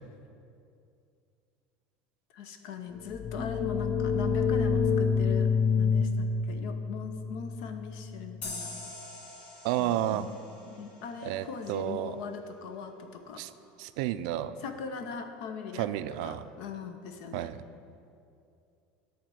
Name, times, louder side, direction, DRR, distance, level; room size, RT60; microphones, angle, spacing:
voice 1, 2.3-5.5 5.8-8.7 9.8-10.4 10.7-13.4 14.6-15.9 16.2-17.5, left 6 dB, 65° left, 7 dB, 0.9 m, -40 dB
sound 1, 3.1-8.6, left 5 dB, 20° left, 0.5 m, -28 dB
sound 2, 8.4-11.8, left 3 dB, 45° left, 1.5 m, -44 dB
voice 2, 9.6-10.3 11.2-12.2 13.3-13.5 13.8-14.5 15.7-16.5 17.3-17.6, right 13 dB, 70° right, 12 dB, 0.4 m, -31 dB
10.5 x 4.3 x 7.7 m, 2.5 s
cardioid pair, 165°, 4 cm